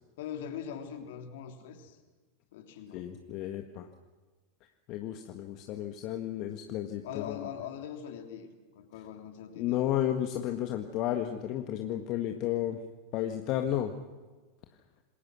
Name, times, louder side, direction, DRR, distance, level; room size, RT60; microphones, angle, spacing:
voice 1, 0.2-2.0 2.5-3.0 7.0-9.9, left 9 dB, 65° left, 5 dB, 3.2 m, -42 dB
voice 2, 2.9-3.9 4.9-7.4 9.6-12.8 13.1-13.9, left 12 dB, 50° left, 5 dB, 1.7 m, -32 dB
27.5 x 21.0 x 6.3 m, 1.3 s
hypercardioid pair, 90°, 0 cm